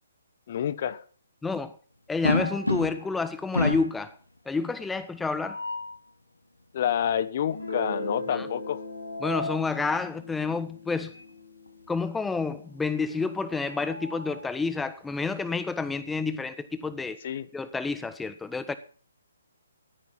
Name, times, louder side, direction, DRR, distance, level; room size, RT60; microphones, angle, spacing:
voice 1, 0.5-1.0 6.7-8.8 17.2-17.5, left 9 dB, 45° left, 0.9 m, -28 dB
voice 2, 1.4-1.7 2.1-4.2 4.5-5.6 8.3-8.5 9.2-11.1 11.9-17.2 17.5-18.7, left 4 dB, 5° left, 0.7 m, -29 dB
sound 1, 2.2-3.2 3.5-4.0 5.2-6.0 8.7-9.7 11.1-11.3 11.7-11.8 13.3-14.5, left 2 dB, 90° left, 1.4 m, -31 dB
Guitar, 7.5-13.0, left 1 dB, 75° left, 5.5 m, -39 dB
13.5 x 9.7 x 5.9 m
figure-of-eight pair, 135°, 0 cm